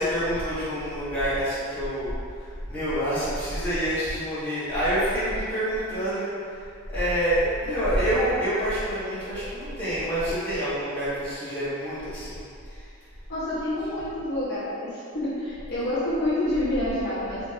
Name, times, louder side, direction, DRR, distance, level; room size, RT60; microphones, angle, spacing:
voice 1, 0.0-2.1 2.7-6.3 6.9-12.8 13.9-14.1, equal, 10° left, -14 dB, 1.3 m, -27 dB
voice 2, 13.3-17.4, left 1 dB, 50° left, -10 dB, 0.9 m, -28 dB
3.1 x 3.0 x 3.3 m, 2.4 s
head